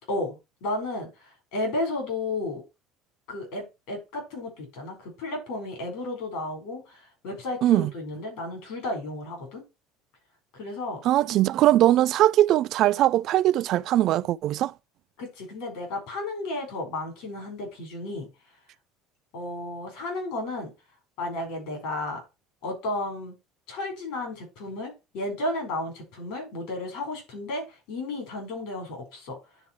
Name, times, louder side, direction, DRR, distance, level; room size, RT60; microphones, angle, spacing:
voice 1, 0.1-2.6 3.3-9.6 10.5-11.0 15.2-18.3 19.3-20.7 21.2-22.2 22.6-23.4 23.7-29.4, left 2 dB, 75° left, 4.6 m, -33 dB
voice 2, 11.0-14.7, right 14 dB, 55° right, 0.3 m, -21 dB
9.9 x 3.9 x 4.4 m
cardioid pair, 125°, 0 cm